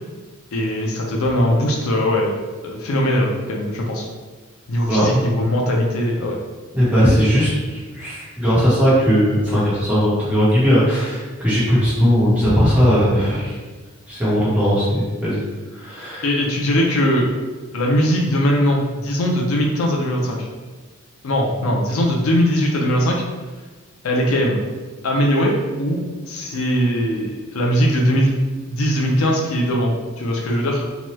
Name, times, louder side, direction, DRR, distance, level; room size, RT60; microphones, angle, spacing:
voice 1, 0.5-2.3 2.6-4.1 4.7-6.4 16.2-17.3 17.7-20.5 21.2-23.2 24.0-24.6 25.0-28.4 28.7-30.8, equal, 75° left, 0 dB, 0.5 m, -20 dB
voice 2, 6.7-13.6 14.1-15.4 15.7-16.2, equal, 5° right, -9 dB, 1.0 m, -18 dB
2.9 x 2.2 x 3.0 m, 1.3 s
head